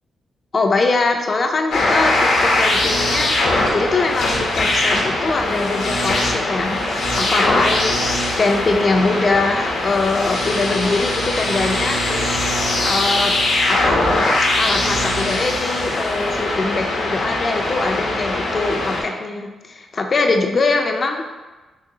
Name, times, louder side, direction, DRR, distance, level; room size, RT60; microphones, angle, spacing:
voice 1, 0.5-6.8 7.2-8.0 8.4-12.5 12.8-13.3 13.7-14.0 14.5-21.2, left 3 dB, 40° left, 4 dB, 0.4 m, -22 dB
sound 1, 1.7-19.0, left 2 dB, 80° left, 0.8 m, -21 dB
3.8 x 3.0 x 2.7 m, 1.2 s
cardioid pair, 115°, 0 cm